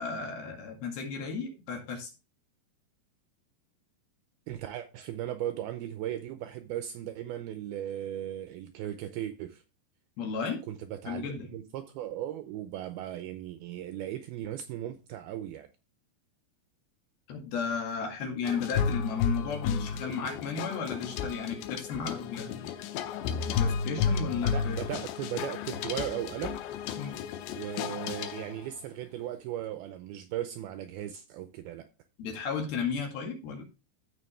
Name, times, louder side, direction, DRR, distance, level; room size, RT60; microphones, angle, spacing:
voice 1, 0.0-2.1 10.2-10.6 11.1-11.5 17.3-22.7 23.5-24.8 27.0-27.1 32.2-33.6, left 5 dB, 65° left, 3.8 m, -34 dB
voice 2, 4.5-9.6 10.7-15.7 24.5-26.6 27.5-31.9, right 12 dB, 85° right, 2.2 m, -37 dB
sound 1, 18.4-28.7, left 6 dB, 85° left, 2.9 m, -32 dB
14.5 x 5.4 x 3.3 m
omnidirectional pair, 5.0 m